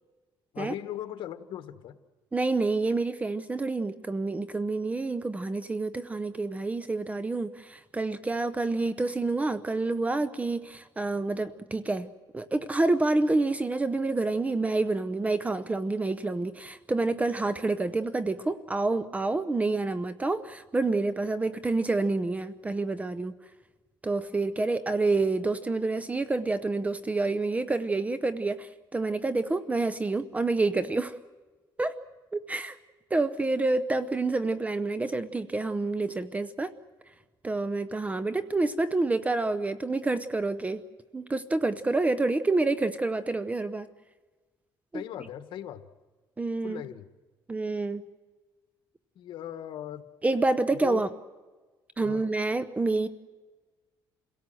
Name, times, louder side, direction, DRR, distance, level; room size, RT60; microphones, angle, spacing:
voice 1, 0.5-2.0 44.9-45.8 46.6-47.0 49.1-50.1 50.8-51.1 52.0-52.3, left 11 dB, 75° left, 9 dB, 1.4 m, -38 dB
voice 2, 2.3-23.3 24.0-31.2 31.8-32.0 32.3-32.8 33.1-36.7 37.4-40.8 41.1-43.9 44.9-45.0 46.4-46.8 47.5-48.1 50.2-51.1 52.0-53.1, right 3 dB, 15° right, 12 dB, 0.7 m, -28 dB
28.0 x 17.5 x 7.7 m, 1.3 s
cardioid pair, 120°, 8 cm